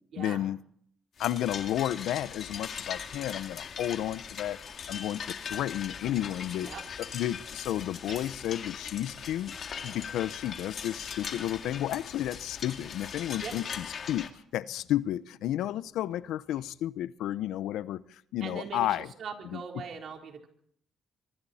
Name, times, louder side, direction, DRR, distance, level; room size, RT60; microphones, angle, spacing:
voice 1, 0.2-0.6 1.2-4.6 4.9-6.7 7.0-9.5 9.8-19.1 19.4-19.8, left 12 dB, 85° left, 16 dB, 0.7 m, -32 dB
sound 1, 1.2-14.3, left 7 dB, 55° left, 2.1 m, -40 dB
sound 2, 5.6-18.1, right 4 dB, 80° right, 7.5 m, -62 dB
voice 2, 18.4-20.5, right 6 dB, 60° right, 3 dB, 4.0 m, -41 dB
25.5 x 23.5 x 4.3 m, 0.64 s
cardioid pair, 90°, 0 cm